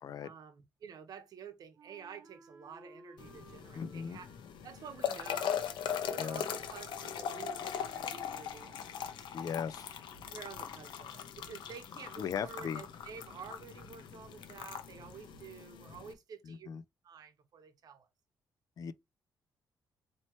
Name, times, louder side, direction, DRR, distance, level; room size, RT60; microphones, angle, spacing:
voice 1, 0.2-4.4 4.6-5.6 6.0-8.8 10.3-16.7 17.0-18.1, right 6 dB, 55° right, 0.9 m, -50 dB
Wind instrument woodwind instrument, 1.8-9.3, right 3 dB, 30° right, 1.2 m, -59 dB
sound 1, 3.2-16.1, left 8 dB, 90° left, 0.7 m, -40 dB
voice 2, 3.7-4.2 6.2-6.4 9.3-9.9 12.2-12.8 16.5-16.8 18.8-18.9, left 7 dB, 50° left, 0.4 m, -38 dB
sound 2, 6.6-6.9 7.2-7.5 7.8-8.1 8.4-8.7 9.0-9.3 9.6-11.7 12.0-12.3 12.6-12.9 13.2-13.5 13.8-14.1 14.4-16.1, right 3 dB, 5° right, 1.5 m, -63 dB
4.3 x 2.9 x 3.0 m
cardioid pair, 150°, 8 cm